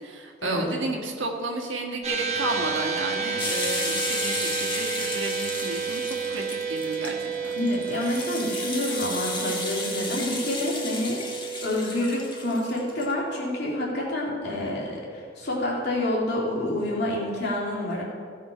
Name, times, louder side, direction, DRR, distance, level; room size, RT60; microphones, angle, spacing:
voice 1, 0.0-7.6, right 2 dB, 75° right, 1 dB, 1.6 m, -32 dB
sound 1, 2.0-14.6, right 6 dB, 35° right, 1.3 m, -32 dB
sound 2, 3.4-13.1, left 3 dB, 25° left, 1.5 m, -33 dB
voice 2, 7.5-11.2 11.6-18.0, left 1 dB, 60° left, -4 dB, 2.8 m, -28 dB
16.0 x 6.0 x 5.0 m, 2.2 s
head